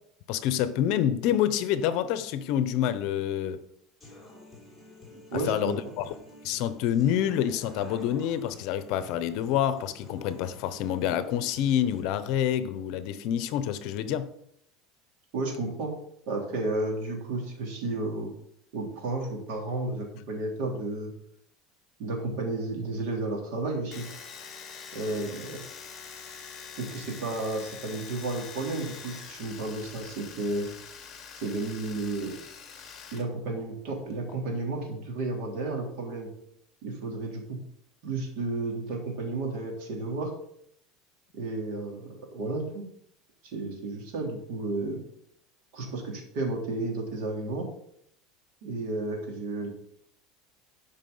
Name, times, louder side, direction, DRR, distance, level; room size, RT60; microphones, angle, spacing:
voice 1, 0.3-3.6 5.5-6.1 6.4-14.3, left 10 dB, 55° left, 0.8 m, -27 dB
Human voice / Acoustic guitar, 4.0-12.0, left 2 dB, 5° left, 3.4 m, -50 dB
voice 2, 5.1-5.7 15.3-15.9 16.3-18.3 18.7-21.1 22.0-24.1 24.9-25.6 26.8-30.7 31.3-32.3 33.1-36.3 36.8-37.6 38.0-40.3 41.3-42.8 43.4-45.0 45.7-47.7 48.6-49.7, right 2 dB, 65° right, 3.3 m, -32 dB
Domestic sounds home sounds, 23.9-33.2 33.5-34.3, left 6 dB, 25° left, 1.7 m, -44 dB
11.5 x 5.5 x 5.5 m
cardioid pair, 165°, 0 cm